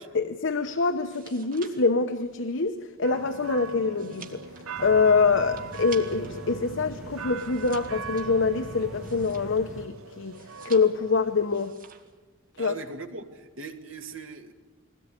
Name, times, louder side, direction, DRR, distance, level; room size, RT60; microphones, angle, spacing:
voice 1, 0.1-4.4 4.8-11.7 12.6-12.7, left 4 dB, 60° left, 8 dB, 0.9 m, -25 dB
sound 1, 0.9-6.4 6.7-9.8 10.3-11.2 11.5-12.2 12.4-12.8, right 6 dB, 45° right, 2.1 m, -49 dB
sound 2, 3.0-11.7, right 5 dB, 90° right, 0.9 m, -41 dB
sound 3, 4.8-9.9, right 1 dB, ahead, 1.5 m, -42 dB
voice 2, 12.6-14.5, right 3 dB, 65° right, 5 dB, 2.1 m, -39 dB
21.5 x 17.5 x 9.8 m, 1.3 s
head